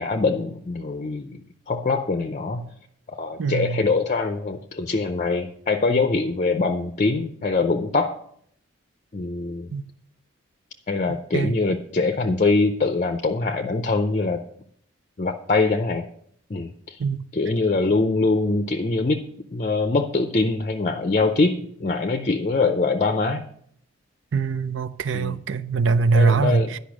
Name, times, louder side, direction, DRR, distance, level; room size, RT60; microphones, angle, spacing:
voice 1, 0.0-1.4 1.7-2.7 3.1-8.2 9.1-9.7 10.9-14.4 15.2-16.0 16.5-17.0 17.3-19.2 19.5-23.5 25.1-25.4 26.1-26.7, left 3 dB, 35° left, 0.5 m, -23 dB
voice 2, 3.4-3.8 9.7-9.8 11.3-11.5 17.0-17.2 24.3-26.8, right 4 dB, 70° right, 0.5 m, -22 dB
10.5 x 5.5 x 6.1 m
head